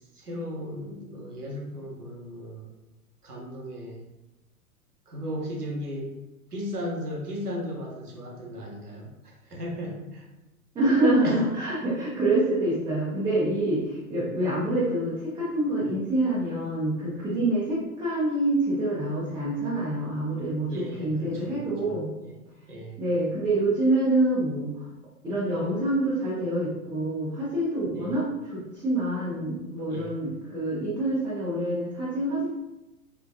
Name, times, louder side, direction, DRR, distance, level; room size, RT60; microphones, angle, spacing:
voice 1, 0.1-2.7 3.2-4.1 5.1-6.1 6.5-10.3 11.2-11.4 20.7-22.0 22.3-22.4 22.7-23.0 27.9-28.1 29.9-30.2, equal, 90° right, 0 dB, 0.9 m, -36 dB
voice 2, 10.7-22.1 23.0-24.9 25.2-32.5, right 1 dB, 10° right, -8 dB, 0.6 m, -26 dB
3.7 x 2.3 x 2.7 m, 1.0 s
figure-of-eight pair, 100°, 44 cm